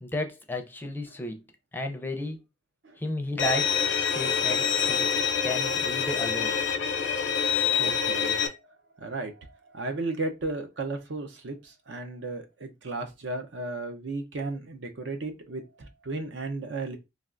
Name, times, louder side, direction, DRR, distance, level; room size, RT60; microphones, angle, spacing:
voice 1, 0.0-1.4 1.7-2.4 3.0-5.2 5.4-6.6, left 1 dB, 10° left, 0.4 m, -33 dB
Bowed string instrument, 3.4-8.5, left 6 dB, 75° left, 0.5 m, -26 dB
voice 2, 7.8-8.5 9.0-17.0, right 2 dB, 75° right, 0.6 m, -35 dB
3.3 x 2.4 x 2.4 m
head